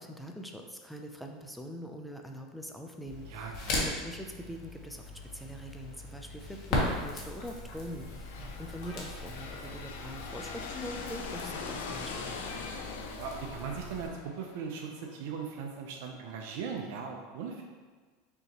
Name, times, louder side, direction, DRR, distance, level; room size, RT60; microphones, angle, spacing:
voice 1, 0.0-12.7, equal, ahead, 2 dB, 0.4 m, -43 dB
Crackle, 3.1-14.1, left 2 dB, 55° left, 1.2 m, -38 dB
voice 2, 3.3-3.9 8.4-8.6 13.2-17.6, right 6 dB, 70° right, 1 dB, 0.5 m, -39 dB
sound 1, 7.4-8.1 8.8-9.8 10.1-10.4 11.2-11.3 11.8-11.9 12.1-12.2 12.4-13.1 13.6-14.0 14.3-14.4, left 2 dB, 70° left, 1.2 m, -51 dB
sound 2, 7.9-15.6, left 5 dB, 90° left, 0.5 m, -42 dB
5.4 x 2.9 x 3.0 m, 1.4 s
supercardioid pair, 125°, 0 cm